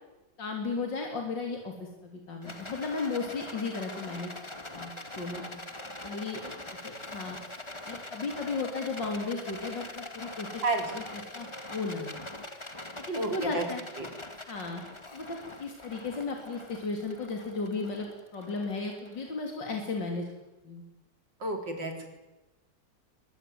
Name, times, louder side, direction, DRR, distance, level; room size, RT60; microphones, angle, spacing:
voice 1, 0.4-4.3 4.7-5.6 6.0-6.4 6.8-7.4 7.9-10.6 10.9-12.1 13.0-13.8 14.5-14.8 15.1-18.1 18.3-20.3 20.6-20.8, left 3 dB, 75° left, 2 dB, 4.0 m, -35 dB
Rattle, 2.4-19.8, left 2 dB, 15° left, 2.2 m, -43 dB
voice 2, 13.2-13.6 14.0-14.1 21.4-22.1, right 2 dB, 85° right, 4 dB, 5.1 m, -31 dB
24.0 x 21.5 x 9.5 m, 1.0 s
omnidirectional pair, 1.9 m